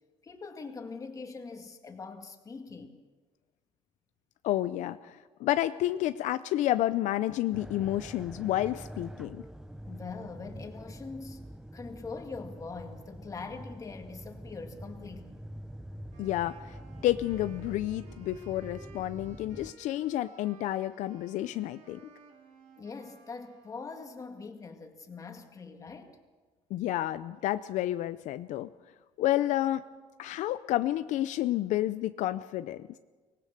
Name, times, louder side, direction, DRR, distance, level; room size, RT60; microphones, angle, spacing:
voice 1, 0.2-3.0 9.9-15.4 22.8-26.2, left 4 dB, 25° left, 5 dB, 2.1 m, -43 dB
voice 2, 4.4-9.4 16.2-16.8 17.0-22.0 26.7-28.7 29.2-29.9 30.2-32.9, left 14 dB, 75° left, 12 dB, 0.5 m, -30 dB
sound 1, 7.5-19.7, right 1 dB, 5° right, 0.6 m, -45 dB
Wind instrument woodwind instrument, 16.1-24.2, right 5 dB, 70° right, 3.2 m, -56 dB
24.0 x 19.0 x 6.6 m, 1.4 s
cardioid pair, 145°, 13 cm